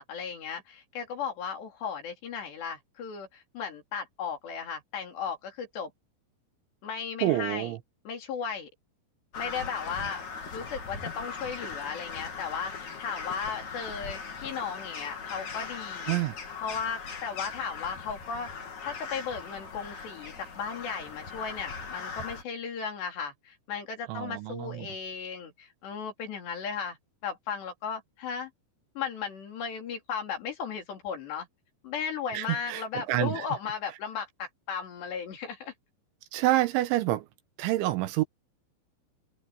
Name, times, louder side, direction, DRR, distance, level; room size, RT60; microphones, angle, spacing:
voice 1, 0.0-5.9 6.8-7.7 8.1-8.7 9.4-10.2 10.5-16.2 16.6-18.5 18.8-27.0 27.2-28.5 29.0-31.5 31.8-35.7, left 6 dB, 60° left, 5.6 m, -36 dB
voice 2, 7.2-7.8 16.1-16.4 24.1-24.9 32.3-33.5 36.3-37.3 37.6-38.2, right 15 dB, 80° right, 3.2 m, -27 dB
Crow, 9.3-22.4, left 5 dB, 40° left, 4.3 m, -39 dB
omnidirectional pair, 5.7 m